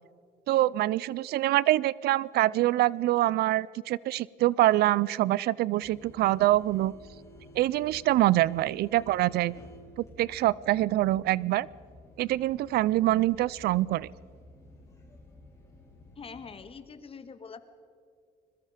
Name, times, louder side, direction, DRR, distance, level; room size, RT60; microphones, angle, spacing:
voice 1, 0.5-6.9 7.6-9.5 10.2-11.7 12.2-14.1, right 15 dB, 70° right, 23 dB, 0.5 m, -25 dB
sound 1, 5.8-16.6, left 1 dB, 15° left, 6.1 m, -52 dB
voice 2, 16.2-17.6, left 5 dB, 35° left, 10 dB, 1.7 m, -44 dB
26.0 x 22.0 x 5.1 m, 2.2 s
cardioid pair, 110°, 17 cm